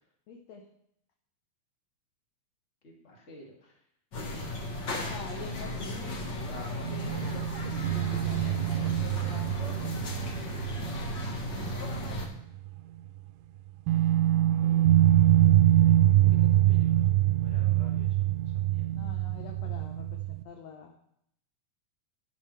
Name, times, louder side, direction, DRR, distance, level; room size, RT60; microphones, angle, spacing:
voice 1, 0.3-0.6 5.1-6.0 14.6-15.0 18.9-20.9, left 5 dB, 70° left, 2 dB, 1.7 m, -45 dB
voice 2, 2.8-3.7 6.5-7.2 8.5-9.0 15.8-17.0 17.4-18.2 18.5-18.8, left 1 dB, 25° left, -2 dB, 2.1 m, -51 dB
sound 1, 4.1-12.3, left 2 dB, 50° left, 1.4 m, -36 dB
sound 2, 6.8-12.3 12.6-12.7 13.9-20.4, right 13 dB, 80° right, 2.2 m, -24 dB
12.0 x 10.5 x 3.3 m, 0.72 s
omnidirectional pair, 4.1 m